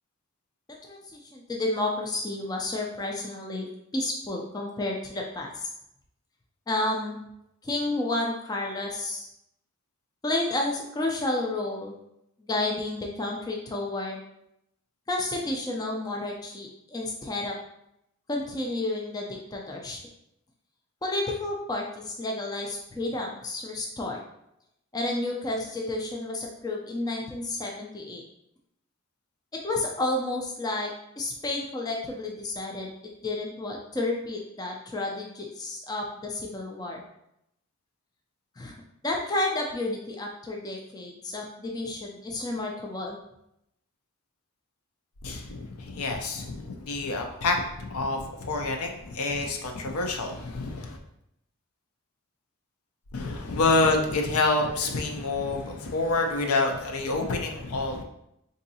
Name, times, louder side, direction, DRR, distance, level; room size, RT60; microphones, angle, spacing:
voice 1, 0.8-3.7 3.9-5.7 6.7-7.2 7.6-9.3 10.2-11.9 12.5-14.2 15.1-17.6 18.3-20.0 21.0-24.2 24.9-28.2 29.5-32.9 33.2-37.0 38.6-38.8 39.0-43.2, left 2 dB, 15° left, 0 dB, 0.3 m, -31 dB
voice 2, 45.2-51.0 53.1-58.0, left 3 dB, 80° left, 3 dB, 0.5 m, -27 dB
3.8 x 2.6 x 2.7 m, 0.79 s
head